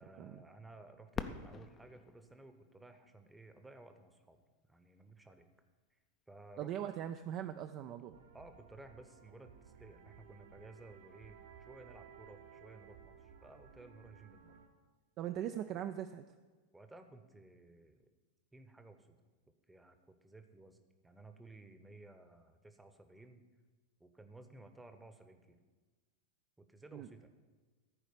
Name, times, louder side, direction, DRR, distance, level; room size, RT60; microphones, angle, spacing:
voice 1, 0.0-5.5 6.3-6.8 8.3-14.6 16.7-18.1 18.5-19.2 19.7-20.8 21.0-23.4 24.0-25.6 26.6-27.3, right 2 dB, 5° right, 8 dB, 0.9 m, -56 dB
Fireworks, 1.1-3.9 4.6-4.7 5.4-5.8 7.7-7.8, left 6 dB, 25° left, 0.5 m, -46 dB
voice 2, 6.6-8.2 15.2-16.2 26.9-27.1, right 10 dB, 35° right, 7 dB, 0.4 m, -40 dB
sound 1, 8.1-14.7, right 7 dB, 60° right, 1.1 m, -58 dB
14.5 x 4.8 x 6.7 m, 1.4 s
figure-of-eight pair, 90°, 0 cm